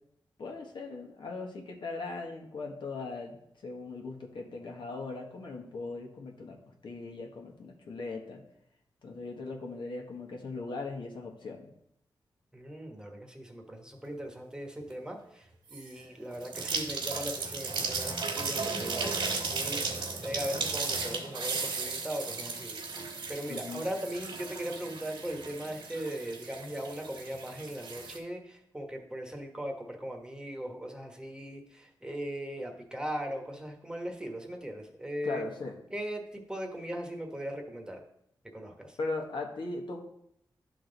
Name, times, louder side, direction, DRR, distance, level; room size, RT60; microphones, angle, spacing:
voice 1, 0.4-3.4 3.6-6.6 6.8-8.4 9.0-11.7 23.5-23.8 35.2-35.7 39.0-40.0, left 3 dB, 70° left, 1 dB, 1.4 m, -39 dB
voice 2, 12.5-35.4 35.9-38.0 38.5-39.0, equal, 10° right, 2 dB, 1.2 m, -39 dB
sound 1, 15.7-16.0 16.3-28.2, right 4 dB, 85° right, 1.7 m, -35 dB
11.0 x 3.8 x 3.9 m, 0.74 s
cardioid pair, 75°, 8 cm